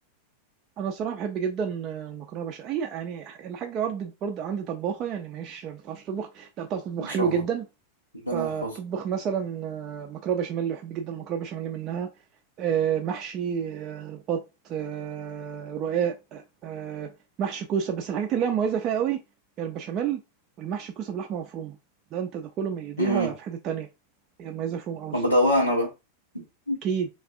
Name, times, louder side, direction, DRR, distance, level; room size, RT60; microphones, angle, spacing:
voice 1, 0.8-7.7 8.3-12.1 12.6-17.1 17.4-19.2 19.6-20.2 20.6-21.8 22.1-23.9 24.4-25.2 26.8-27.1, right 8 dB, 35° right, 0.4 m, -30 dB
voice 2, 7.0-7.4 8.1-8.7 23.0-23.3 25.1-25.9 26.3-26.8, equal, 90° left, 0.7 m, -25 dB
3.2 x 2.4 x 2.4 m
figure-of-eight pair, 90°, 0 cm